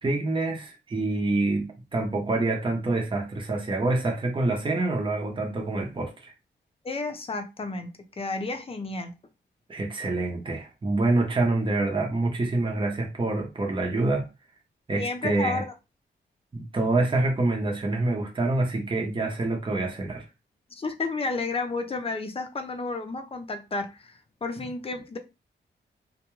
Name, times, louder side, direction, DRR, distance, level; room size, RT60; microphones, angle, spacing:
voice 1, 0.0-6.3 9.7-14.3 14.9-15.6 16.5-20.2, right 2 dB, 25° right, 0.8 m, -26 dB
voice 2, 6.8-9.1 15.0-15.7 20.8-25.2, left 3 dB, 30° left, 0.6 m, -32 dB
2.3 x 2.2 x 3.1 m
cardioid pair, 70°, 19 cm